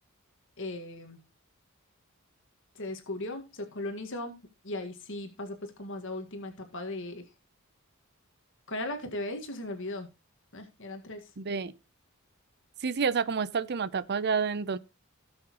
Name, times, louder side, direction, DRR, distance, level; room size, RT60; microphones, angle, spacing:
voice 1, 0.6-1.2 2.8-4.4 4.6-7.3 8.7-10.1 10.5-11.3, left 2 dB, 65° left, 1.8 m, -37 dB
voice 2, 11.4-11.7 12.8-14.8, right 5 dB, 50° right, 0.6 m, -29 dB
18.0 x 6.5 x 3.0 m
head